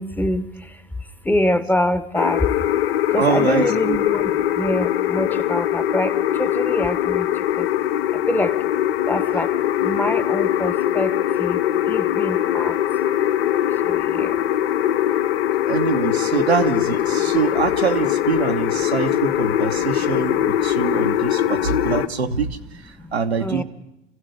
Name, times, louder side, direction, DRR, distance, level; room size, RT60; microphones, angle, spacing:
voice 1, 0.0-2.7 3.1-7.7 8.1-8.6 9.1-9.5 9.8-12.8 13.8-14.4 17.1-17.2 19.0-19.2 19.7-20.3 20.7-21.9 23.0-23.1 23.4-23.6, left 1 dB, 5° left, 13 dB, 0.9 m, -26 dB
sound 1, 2.1-22.1, left 11 dB, 70° left, 1.0 m, -21 dB
voice 2, 3.2-4.0 15.7-23.6, right 6 dB, 90° right, 5 dB, 1.3 m, -24 dB
27.0 x 16.0 x 6.5 m, 0.93 s
hypercardioid pair, 85°, 31 cm